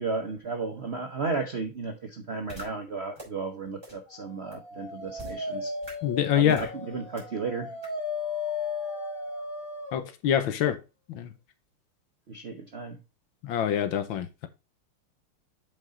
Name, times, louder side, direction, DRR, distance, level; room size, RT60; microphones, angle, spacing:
voice 1, 0.0-5.7 6.3-7.7 12.3-13.0, right 4 dB, 55° right, 0.7 m, -34 dB
sound 1, 2.5-2.6 3.2-3.3 3.8-3.9 4.5-4.6 5.2-5.3 5.8-5.9 6.5-6.7 7.2-7.3 7.8-7.9, left 1 dB, 10° right, 4.3 m, -41 dB
Dog, 4.5-10.1, left 4 dB, 40° left, 2.3 m, -35 dB
voice 2, 6.0-6.6 9.9-10.8 11.1-11.3 13.4-14.5, left 10 dB, 70° left, 1.6 m, -25 dB
7.7 x 5.3 x 3.8 m
omnidirectional pair, 2.4 m